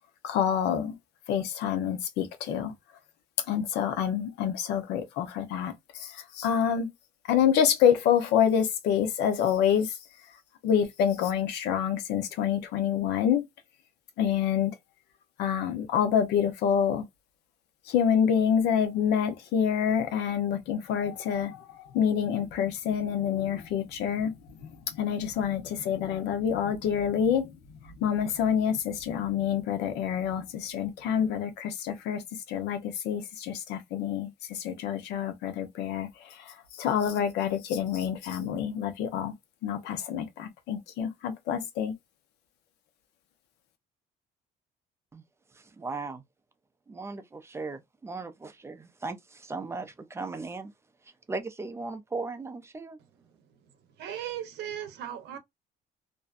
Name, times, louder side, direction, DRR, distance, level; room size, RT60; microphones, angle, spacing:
voice 1, 0.2-0.9 1.3-2.7 3.5-6.9 7.3-10.0 10.6-13.4 14.2-14.7 15.4-17.0 17.9-24.3 24.6-32.2 32.5-39.3 39.6-41.9, left 8 dB, 85° left, 0.7 m, -27 dB
voice 2, 45.8-46.2 46.9-50.7 51.3-53.0, right 3 dB, 15° right, 0.4 m, -37 dB
voice 3, 54.0-55.4, right 10 dB, 80° right, 0.7 m, -37 dB
2.6 x 2.1 x 2.4 m
cardioid pair, 110°, 17 cm